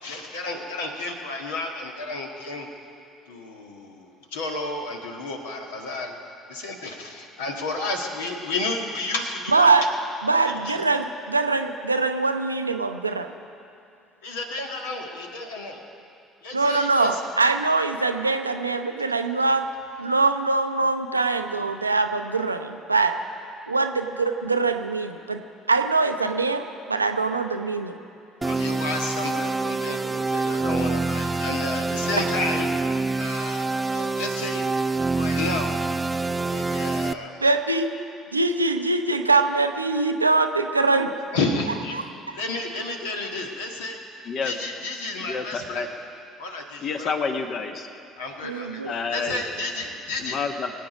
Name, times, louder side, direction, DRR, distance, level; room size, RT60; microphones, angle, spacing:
voice 1, 0.0-2.7 3.3-6.2 6.5-9.7 10.4-10.8 14.2-15.8 16.4-17.2 28.4-32.7 33.2-34.7 35.1-35.7 36.5-37.5 41.3-41.9 42.3-44.0 44.4-45.9 46.4-47.1 48.2-48.8 49.1-50.4, left 2 dB, 70° left, 2 dB, 1.6 m, -31 dB
voice 2, 9.5-9.8 10.2-13.3 16.5-19.6 20.0-23.1 23.7-25.4 25.7-28.0 36.6-36.8 37.4-37.9 38.3-41.1 41.9-42.0 48.4-48.9, right 3 dB, 85° right, 7 dB, 0.6 m, -23 dB
sound 1, 28.4-37.1, right 3 dB, 15° right, 0.5 m, -26 dB
voice 3, 45.2-45.9 46.8-47.9 48.8-49.4 50.2-50.7, left 5 dB, 45° left, 6 dB, 1.3 m, -29 dB
24.0 x 8.6 x 5.2 m, 2.5 s
figure-of-eight pair, 55°, 0 cm